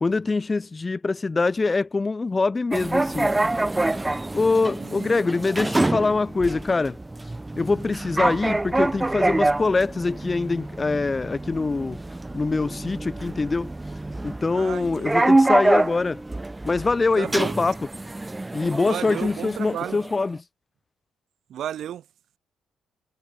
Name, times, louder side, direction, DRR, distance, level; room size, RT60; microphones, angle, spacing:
voice 1, 0.0-3.3 4.3-7.0 7.6-12.0 12.3-13.7 14.2-16.2 16.6-17.8 18.5-20.4, left 3 dB, 25° left, 0.4 m, -24 dB
sound 1, 2.7-20.2, right 2 dB, 15° right, 0.9 m, -26 dB
voice 2, 4.8-5.3 14.5-15.3 17.2-17.6 18.8-20.0 21.5-22.0, right 10 dB, 70° right, 0.5 m, -33 dB
cardioid pair, 90°, 0 cm